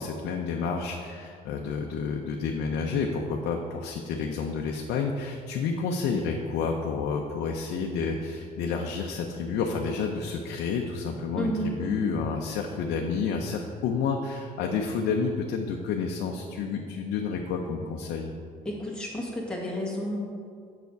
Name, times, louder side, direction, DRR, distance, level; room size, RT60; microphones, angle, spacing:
voice 1, 0.0-18.3, left 5 dB, 80° left, 1 dB, 0.6 m, -30 dB
voice 2, 11.3-12.1 18.7-20.2, equal, 5° left, -4 dB, 1.8 m, -31 dB
7.1 x 5.9 x 4.6 m, 2.3 s
cardioid pair, 110°, 17 cm